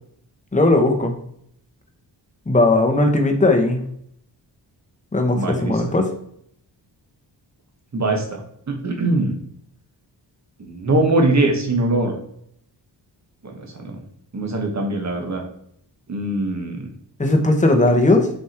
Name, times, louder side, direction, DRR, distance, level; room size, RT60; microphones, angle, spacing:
voice 1, 0.5-1.1 2.5-3.8 5.1-6.1 17.2-18.3, left 2 dB, 15° left, 4 dB, 1.2 m, -17 dB
voice 2, 5.3-5.8 7.9-8.4 8.7-9.4 10.6-12.1 13.4-14.0 14.3-15.4 16.1-16.9, right 2 dB, 40° right, 2 dB, 1.8 m, -22 dB
7.2 x 5.2 x 4.5 m, 0.68 s
wide cardioid pair, 135°, 43 cm